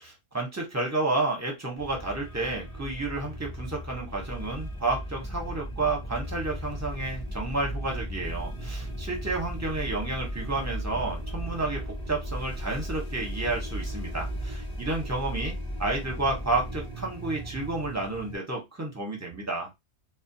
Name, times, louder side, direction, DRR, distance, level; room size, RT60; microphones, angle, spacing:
voice 1, 0.3-15.5 15.8-19.7, right 2 dB, 20° right, 0 dB, 0.5 m, -31 dB
sound 1, 1.8-18.4, equal, 30° left, 0.7 m, -36 dB
2.3 x 2.1 x 2.6 m, 0.20 s
omnidirectional pair, 1.2 m